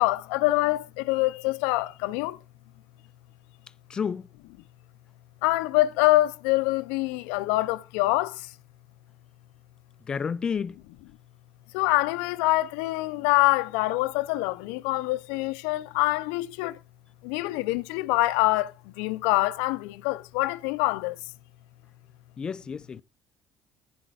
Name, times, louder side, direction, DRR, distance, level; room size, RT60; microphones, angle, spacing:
voice 1, 0.0-2.4 5.4-8.3 11.7-16.7 17.2-18.7 19.0-21.2, left 19 dB, 80° left, 0.6 m, -25 dB
voice 2, 3.9-4.3 10.1-10.8 22.4-23.0, left 6 dB, 40° left, 0.5 m, -30 dB
15.0 x 10.5 x 2.5 m
hypercardioid pair, 65°, 2 cm